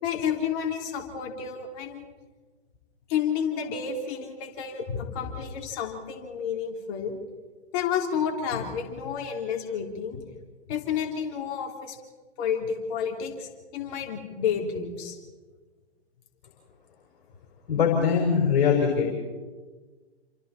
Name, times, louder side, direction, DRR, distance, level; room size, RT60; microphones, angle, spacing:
voice 1, 0.0-2.0 3.1-7.2 7.7-10.2 10.7-12.0 12.4-15.2, left 7 dB, 35° left, 2 dB, 3.5 m, -30 dB
voice 2, 17.7-19.1, left 6 dB, 50° left, 0 dB, 5.0 m, -22 dB
28.5 x 27.0 x 4.2 m, 1.3 s
figure-of-eight pair, 120°, 33 cm